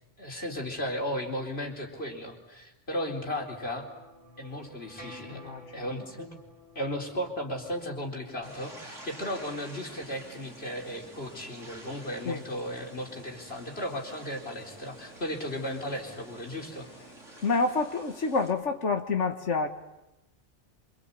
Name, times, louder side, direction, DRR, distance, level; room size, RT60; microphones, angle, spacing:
voice 1, 0.2-3.9 4.4-5.5 5.7-6.4 6.7-16.9, equal, 55° left, 0 dB, 4.5 m, -35 dB
sound 1, 3.5-8.6, equal, 30° left, 7.0 m, -51 dB
voice 2, 5.3-5.9 12.2-12.4 17.4-19.7, left 4 dB, 75° left, 5 dB, 2.0 m, -28 dB
sound 2, 8.4-18.5, right 2 dB, 85° right, 5.5 m, -49 dB
26.5 x 24.5 x 8.4 m, 0.96 s
omnidirectional pair, 1.2 m